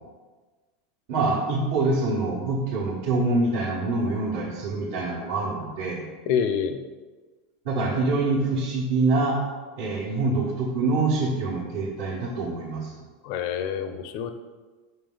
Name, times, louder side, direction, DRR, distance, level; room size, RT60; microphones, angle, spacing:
voice 1, 1.1-6.0 7.6-9.4 9.8-13.0, right 3 dB, 65° right, -6 dB, 1.3 m, -25 dB
voice 2, 6.3-6.8 13.2-14.3, left 7 dB, 60° left, 9 dB, 0.5 m, -27 dB
5.3 x 5.2 x 3.9 m, 1.3 s
supercardioid pair, 140°, 0 cm